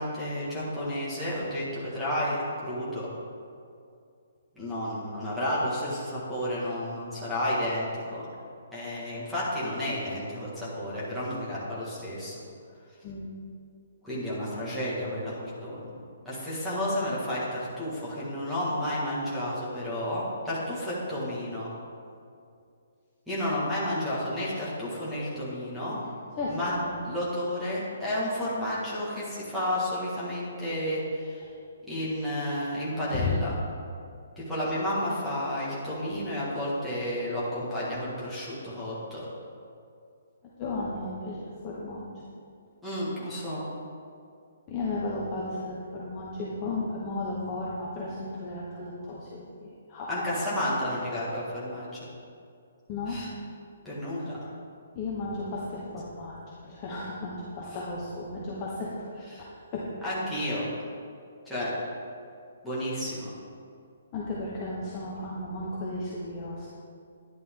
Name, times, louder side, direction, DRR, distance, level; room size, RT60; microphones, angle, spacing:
voice 1, 0.0-2.4 2.7-3.1 4.6-8.3 8.7-12.3 14.0-15.9 16.3-21.7 23.3-26.0 26.5-26.7 27.0-31.5 31.9-33.5 34.4-39.3 42.8-43.6 50.1-52.0 53.1-53.3 53.9-54.4 59.3-59.5 60.0-60.7 61.5-61.7 62.6-63.3, left 1 dB, ahead, -11 dB, 1.9 m, -31 dB
voice 2, 26.4-27.1 33.1-33.4 40.6-42.2 44.7-50.4 52.9-53.2 54.3-54.4 54.9-59.1 59.4-59.5 59.7-60.1 64.1-66.7, left 2 dB, 15° left, -6 dB, 1.0 m, -34 dB
11.0 x 10.5 x 3.8 m, 2.4 s
hypercardioid pair, 180°, 0 cm